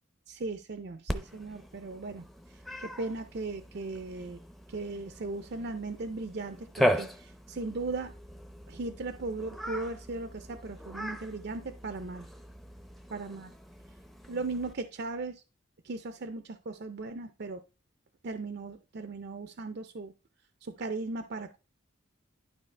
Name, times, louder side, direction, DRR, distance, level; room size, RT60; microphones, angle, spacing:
voice 1, 0.3-2.3 2.8-4.4 4.7-8.1 8.7-12.3 13.1-13.5 14.3-15.4 15.8-17.6 18.2-20.1 20.6-21.6, right 3 dB, 50° right, 9 dB, 0.5 m, -37 dB
Cat, 1.1-14.7, equal, ahead, 0.6 m, -38 dB
11.5 x 4.5 x 3.3 m, 0.30 s
head